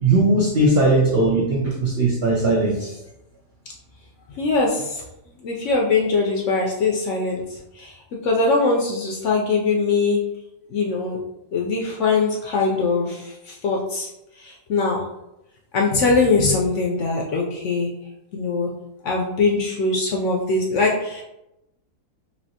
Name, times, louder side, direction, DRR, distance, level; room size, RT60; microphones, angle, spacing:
voice 1, 0.0-2.9, right 2 dB, 80° right, -2 dB, 0.5 m, -19 dB
voice 2, 4.3-5.0 5.4-10.3 10.7-11.2 11.5-15.1 15.7-17.9 18.3-18.8 19.0-21.2, left 3 dB, 70° left, -1 dB, 0.7 m, -22 dB
3.2 x 2.7 x 2.7 m, 0.87 s
omnidirectional pair, 1.7 m